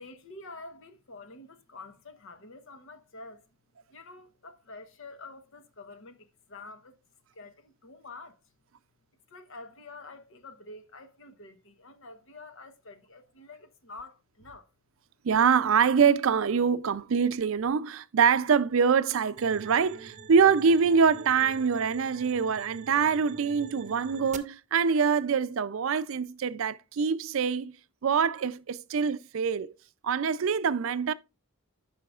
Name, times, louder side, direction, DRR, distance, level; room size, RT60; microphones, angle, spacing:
voice 1, 0.0-3.5 3.9-7.0 7.3-8.4 9.3-14.7, left 3 dB, 70° left, 1.0 m, -47 dB
voice 2, 15.2-27.8 28.0-29.7 30.0-31.1, right 6 dB, 70° right, 0.4 m, -24 dB
sound 1, 19.4-24.4, right 6 dB, 35° right, 0.7 m, -46 dB
14.0 x 5.7 x 2.4 m
head